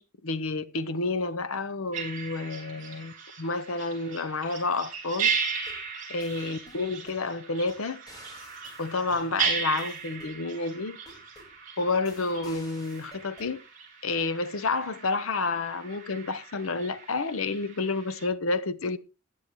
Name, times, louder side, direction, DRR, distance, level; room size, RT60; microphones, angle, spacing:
voice 1, 0.0-5.3 6.1-8.0 8.8-11.0 11.8-13.6 14.0-19.0, left 3 dB, 90° left, 0.8 m, -30 dB
sound 1, 1.9-18.3, right 6 dB, 40° right, 7.1 m, -36 dB
sound 2, 5.5-5.9 6.2-7.2 7.7-7.8 8.1-10.4 11.1-11.6 12.1-13.5, equal, 20° left, 4.4 m, -52 dB
16.0 x 10.0 x 3.1 m
head